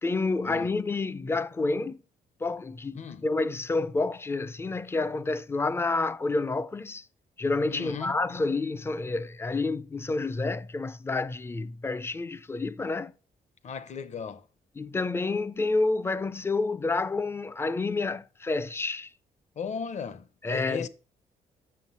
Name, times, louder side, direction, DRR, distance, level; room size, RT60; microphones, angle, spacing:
voice 1, 0.0-2.0 2.4-7.1 7.4-13.1 14.8-19.1 20.4-20.9, left 3 dB, 15° left, 0.4 m, -29 dB
voice 2, 2.9-3.3 7.7-8.2 13.6-14.5 19.6-20.9, left 6 dB, 45° left, 0.8 m, -36 dB
7.6 x 6.5 x 5.5 m
cardioid pair, 135°, 16 cm